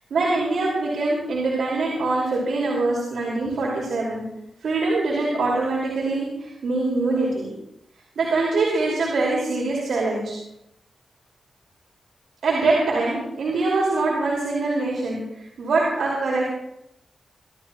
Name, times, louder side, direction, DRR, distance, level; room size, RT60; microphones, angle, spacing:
voice 1, 0.1-4.2 4.6-7.5 8.2-10.4 12.4-16.5, right 3 dB, 80° right, -5 dB, 5.5 m, -23 dB
27.0 x 15.0 x 3.2 m, 0.83 s
wide cardioid pair, 95°, 0 cm